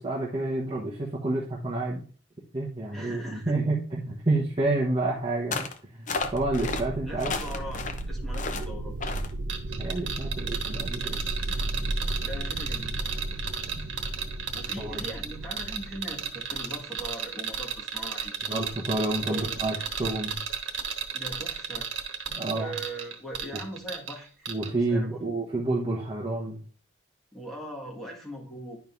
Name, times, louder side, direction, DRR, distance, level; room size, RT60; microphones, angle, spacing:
voice 1, 0.0-2.1 2.5-5.6 5.9-7.5 9.8-11.2 13.8-13.9 14.8-15.0 18.5-20.4 22.3-22.7 24.5-26.6, right 2 dB, 30° right, -4 dB, 1.1 m, -29 dB
voice 2, 2.9-3.6 7.1-9.0 12.2-13.0 14.5-18.3 19.3-19.5 21.1-21.9 22.5-24.5 24.9-25.2 27.3-28.8, right 1 dB, ahead, -3 dB, 1.6 m, -40 dB
sound 1, 5.5-5.8 6.1-6.8 7.2-8.0 8.3-8.7 9.0-9.3, left 4 dB, 40° left, 0.6 m, -32 dB
sound 2, 6.2-16.8, right 1 dB, 60° right, 0.5 m, -34 dB
sound 3, 9.5-24.2 24.5-24.7, right 7 dB, 85° right, 1.2 m, -33 dB
10.5 x 5.2 x 2.6 m, 0.40 s
head